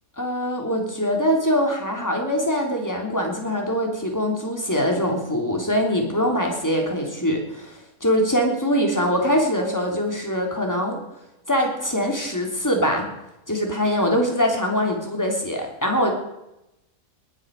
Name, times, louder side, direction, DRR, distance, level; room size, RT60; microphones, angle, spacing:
voice 1, 0.2-11.0 11.5-13.1 13.5-16.1, equal, 10° left, 1 dB, 3.4 m, -23 dB
20.0 x 11.0 x 6.6 m, 0.90 s
omnidirectional pair, 1.7 m